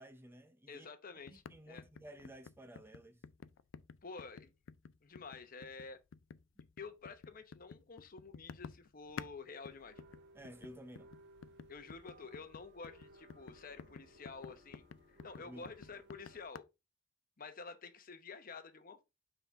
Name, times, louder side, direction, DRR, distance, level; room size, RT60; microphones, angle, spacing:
voice 1, 0.0-0.9 1.3-3.2 10.3-11.1 15.4-15.7, equal, 10° right, 0.5 m, -53 dB
voice 2, 0.7-1.8 4.0-4.5 5.0-6.0 6.8-10.0 11.7-16.7 17.4-19.0, left 4 dB, 50° left, 0.9 m, -50 dB
sound 1, 1.3-9.4 9.6-16.6, left 6 dB, 80° left, 0.4 m, -51 dB
sound 2, 9.6-16.5, right 1 dB, 65° right, 1.4 m, -61 dB
5.7 x 3.8 x 4.5 m
head